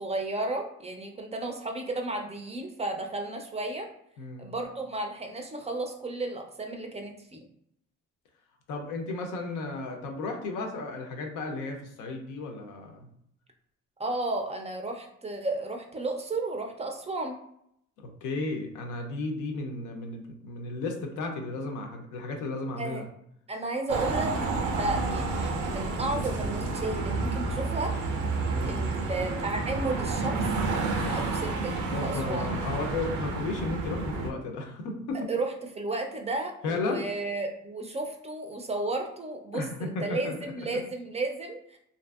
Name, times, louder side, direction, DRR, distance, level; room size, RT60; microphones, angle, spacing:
voice 1, 0.0-3.9 4.4-7.4 14.0-17.4 22.8-23.0 23.5-27.9 28.6-30.4 31.0-31.8 32.0-32.5 35.3-41.8, right 2 dB, 20° right, 3 dB, 0.4 m, -33 dB
voice 2, 4.2-4.5 8.7-13.1 18.0-23.1 28.5-28.8 31.9-35.3 36.6-37.1 39.5-40.4, left 3 dB, 90° left, 3 dB, 0.6 m, -34 dB
sound 1, 23.9-34.3, right 3 dB, 90° right, 0.5 m, -30 dB
2.6 x 2.5 x 2.3 m, 0.72 s
cardioid pair, 90°, 30 cm